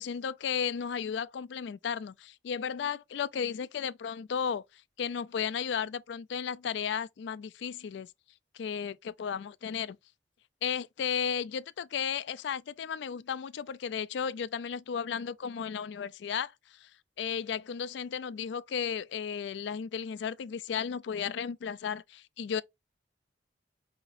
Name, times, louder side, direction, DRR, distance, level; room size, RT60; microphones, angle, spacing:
voice 1, 0.0-4.6 5.0-8.1 8.5-10.0 10.6-16.5 16.8-16.9 17.2-22.6, left 7 dB, 70° left, 0.3 m, -34 dB
5.5 x 2.8 x 2.5 m
head